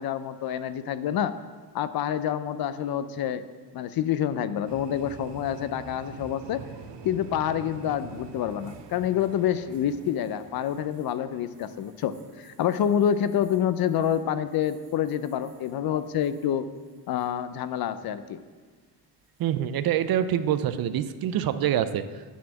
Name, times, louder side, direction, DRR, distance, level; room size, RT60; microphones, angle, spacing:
voice 1, 0.0-1.4 1.7-3.4 3.7-6.6 7.0-16.7 17.1-18.4, left 9 dB, 60° left, 12 dB, 0.5 m, -27 dB
sound 1, 4.7-16.5 16.8-17.3 19.2-19.6, right 6 dB, 85° right, 0.9 m, -48 dB
voice 2, 19.4-22.2, right 10 dB, 60° right, 12 dB, 0.5 m, -26 dB
9.3 x 4.2 x 7.0 m, 1.4 s
cardioid pair, 150°, 41 cm